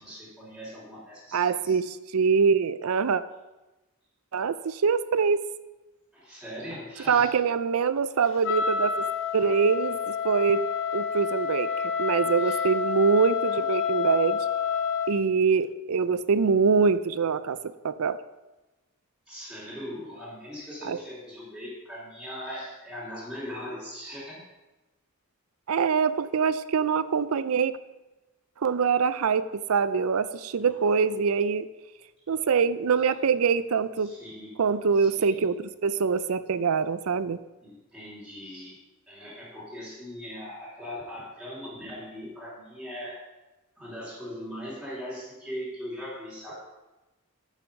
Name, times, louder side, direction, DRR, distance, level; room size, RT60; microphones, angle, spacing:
voice 1, 0.0-1.8 6.1-7.4 12.4-12.6 19.3-24.4 30.6-31.0 33.0-33.1 34.0-34.6 34.9-35.4 37.6-38.8 39.1-43.2 43.8-46.5, equal, ahead, -11 dB, 3.1 m, -40 dB
voice 2, 1.3-3.2 4.3-5.4 7.1-9.1 9.3-10.7 10.9-14.5 15.1-18.2 20.8-21.0 25.7-27.8 28.6-31.7 32.3-34.1 34.6-37.4, right 5 dB, 70° right, 15 dB, 0.5 m, -24 dB
Wind instrument woodwind instrument, 8.4-15.2, left 6 dB, 60° left, 0.5 m, -28 dB
9.2 x 7.0 x 5.3 m, 1.1 s
head